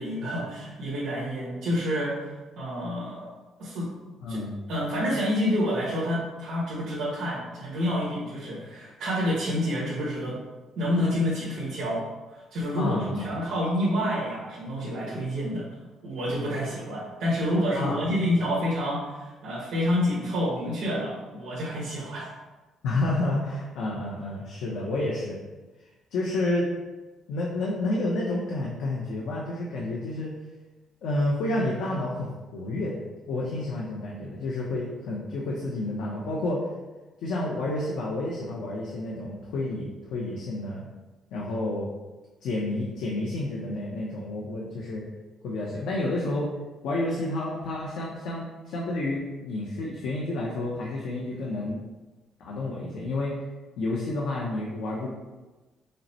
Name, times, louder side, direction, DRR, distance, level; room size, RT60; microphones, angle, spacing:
voice 1, 0.0-2.3 2.6-3.3 3.6-3.9 4.3-4.4 4.7-10.4 10.7-12.0 12.5-15.6 16.0-22.3, equal, 55° right, -9 dB, 1.4 m, -28 dB
voice 2, 4.2-4.6 12.7-13.3 17.8-18.1 22.8-25.4 26.1-26.7 27.3-30.3 31.0-33.0 33.3-36.7 37.2-40.8 41.3-41.9 42.4-45.0 45.4-46.5 46.8-51.8 52.4-53.4 53.8-55.1, left 2 dB, 85° left, -4 dB, 0.7 m, -30 dB
5.3 x 2.1 x 4.2 m, 1.2 s
cardioid pair, 170°, 0 cm